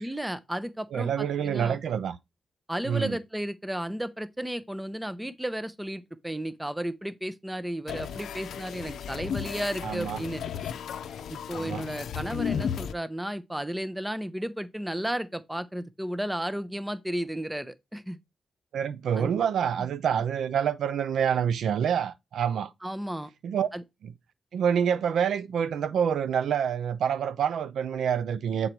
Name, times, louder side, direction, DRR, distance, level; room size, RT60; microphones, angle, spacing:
voice 1, 0.0-1.8 2.7-10.4 11.3-18.2 19.2-19.3 19.8-19.9 22.8-23.3 23.7-23.8, right 1 dB, 5° right, 0.6 m, -33 dB
voice 2, 0.9-2.2 2.8-3.2 9.8-10.2 11.6-11.8 18.7-22.7 23.4-23.7 24.0-24.1 24.5-28.7, right 8 dB, 80° right, 0.5 m, -27 dB
sound 1, 7.9-12.9, left 8 dB, 85° left, 0.5 m, -34 dB
7.4 x 4.0 x 4.4 m
cardioid pair, 95°, 0 cm